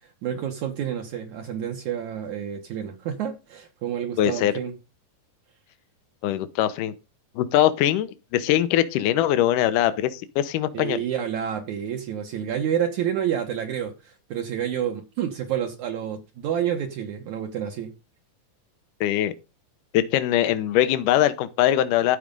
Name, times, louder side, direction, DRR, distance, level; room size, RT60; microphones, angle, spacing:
voice 1, 0.2-4.7 10.7-17.9, right 9 dB, 65° right, 2.3 m, -29 dB
voice 2, 4.2-4.5 6.2-6.9 7.4-11.0 19.0-19.3 19.9-22.2, left 12 dB, 75° left, 2.3 m, -22 dB
14.5 x 4.9 x 5.3 m
omnidirectional pair, 4.1 m